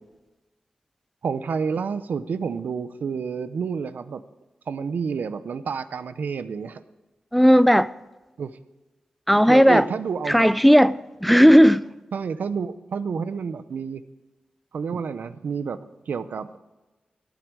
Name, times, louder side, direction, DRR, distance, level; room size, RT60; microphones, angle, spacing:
voice 1, 1.2-4.2 4.7-6.8 8.4-8.5 9.5-10.5 11.3-11.5 12.1-14.0 14.7-15.8 16.1-16.6, right 6 dB, 80° right, 0.7 m, -29 dB
voice 2, 7.3-7.9 9.3-9.8 10.3-11.8, equal, ahead, 0.3 m, -15 dB
17.5 x 9.1 x 4.7 m
wide cardioid pair, 150°, 3 cm